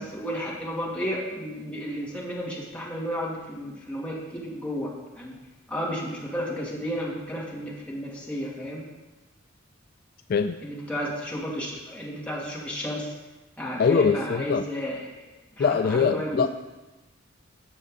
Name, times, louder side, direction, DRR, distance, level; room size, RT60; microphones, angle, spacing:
voice 1, 0.0-5.3 5.7-8.8 10.6-13.1 13.6-15.1 15.6-16.5, equal, 5° left, -6 dB, 2.4 m, -32 dB
voice 2, 13.8-14.7 15.6-16.5, left 5 dB, 50° left, 9 dB, 0.3 m, -22 dB
17.0 x 6.4 x 3.8 m, 1.1 s
head